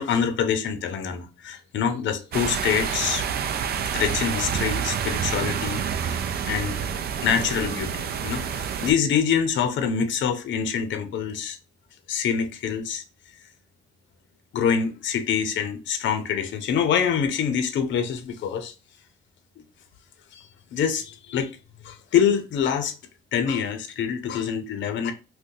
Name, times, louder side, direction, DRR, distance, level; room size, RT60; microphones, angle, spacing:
voice 1, 0.0-3.3 3.9-6.8 7.2-11.6 12.1-13.0 14.5-18.7 20.3-21.5 21.8-22.9 23.3-25.1, left 7 dB, 70° left, 0.6 m, -25 dB
sound 1, 2.3-8.9, right 7 dB, 50° right, 0.4 m, -28 dB
2.6 x 2.2 x 3.7 m
cardioid pair, 90°, 20 cm